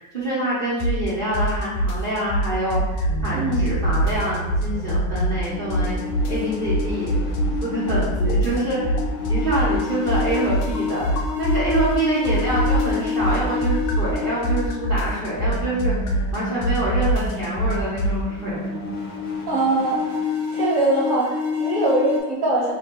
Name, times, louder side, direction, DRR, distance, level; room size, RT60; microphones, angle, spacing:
voice 1, 0.0-6.0 6.3-7.2 7.6-8.9 9.3-11.1 11.4-18.7, right 1 dB, 45° right, -10 dB, 0.7 m, -26 dB
sound 1, 0.8-1.1 1.3-3.3 3.5-5.5 5.7-7.6 7.9-12.0 12.2-18.2, right 1 dB, 75° left, 1.1 m, -23 dB
Bass guitar, 3.1-9.3, right 5 dB, 90° right, 1.5 m, -35 dB
voice 2, 3.3-3.7 19.5-20.0 20.5-22.7, right 2 dB, 15° right, -6 dB, 0.9 m, -22 dB
sound 2, 4.7-22.2, left 5 dB, 45° left, 1.1 m, -30 dB
3.7 x 3.1 x 4.4 m, 1.2 s
omnidirectional pair, 2.3 m